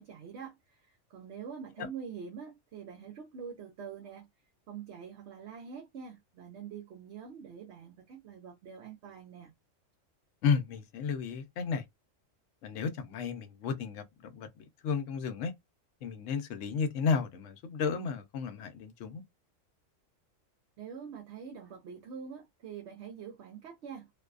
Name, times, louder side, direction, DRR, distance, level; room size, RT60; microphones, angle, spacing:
voice 1, 0.0-4.3 4.7-9.5 20.8-24.1, right 7 dB, 65° right, 0.8 m, -45 dB
voice 2, 10.4-11.8 12.6-15.5 16.0-19.2, left 5 dB, 70° left, 0.9 m, -33 dB
2.6 x 2.2 x 2.4 m
omnidirectional pair, 1.4 m